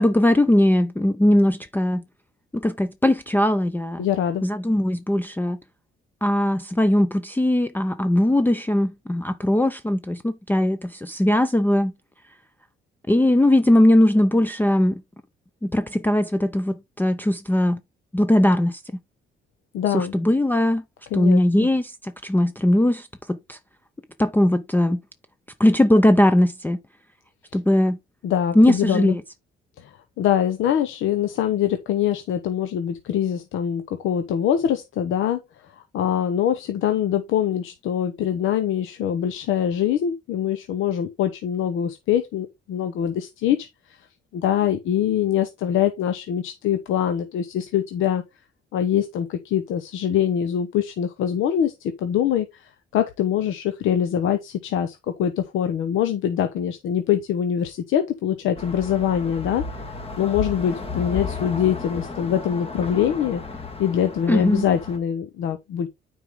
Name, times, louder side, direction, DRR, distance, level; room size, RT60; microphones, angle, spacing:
voice 1, 0.0-2.0 2.5-4.1 4.4-5.6 6.2-11.9 13.1-15.0 15.6-17.8 18.1-18.8 19.9-20.8 21.1-23.6 24.2-25.0 25.6-26.8 27.5-28.0 28.5-29.2 64.3-64.6, left 1 dB, 10° left, 0.5 m, -19 dB
voice 2, 4.0-4.4 19.7-20.1 21.1-21.7 28.2-29.2 29.8-43.7 44.3-48.2 48.7-59.8 60.2-63.4 63.8-65.9, left 9 dB, 85° left, 1.0 m, -24 dB
sound 1, 58.6-65.0, left 4 dB, 30° left, 2.0 m, -33 dB
9.1 x 4.7 x 3.6 m
cardioid pair, 90°, 20 cm